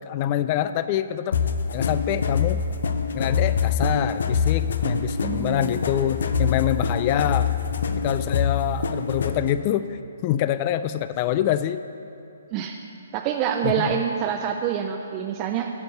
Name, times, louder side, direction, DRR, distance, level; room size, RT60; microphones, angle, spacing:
voice 1, 0.0-1.4 1.7-2.6 3.1-7.5 7.9-9.9 10.2-11.8 13.6-14.0, left 11 dB, 35° left, 13 dB, 0.3 m, -25 dB
sound 1, 1.3-9.5, left 5 dB, 70° left, 0.7 m, -25 dB
voice 2, 5.2-5.8 12.5-12.8 13.1-15.7, right 8 dB, 30° right, 3 dB, 0.5 m, -26 dB
11.0 x 5.3 x 7.9 m, 2.6 s
hypercardioid pair, 140°, 0 cm